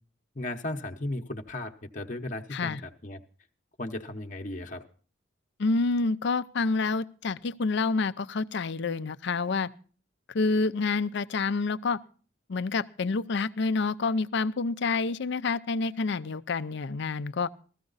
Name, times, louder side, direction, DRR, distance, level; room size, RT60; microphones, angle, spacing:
voice 1, 0.3-3.2 3.8-4.8, left 1 dB, 40° left, 4 dB, 0.9 m, -36 dB
voice 2, 5.6-9.7 10.3-12.0 12.5-17.5, left 4 dB, 60° left, 15 dB, 0.5 m, -28 dB
15.5 x 14.0 x 4.0 m, 0.41 s
head